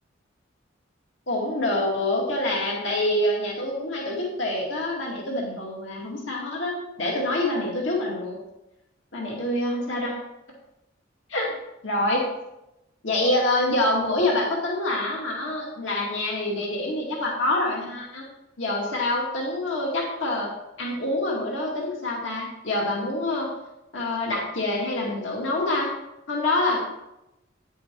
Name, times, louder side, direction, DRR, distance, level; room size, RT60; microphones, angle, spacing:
voice 1, 1.3-8.4 9.1-10.2 11.3-11.5 11.8-12.2 13.0-18.2 18.6-20.5 20.8-23.5 23.9-25.9 26.3-26.8, left 1 dB, 75° left, -2 dB, 2.2 m, -26 dB
9.9 x 7.1 x 4.6 m, 0.90 s
head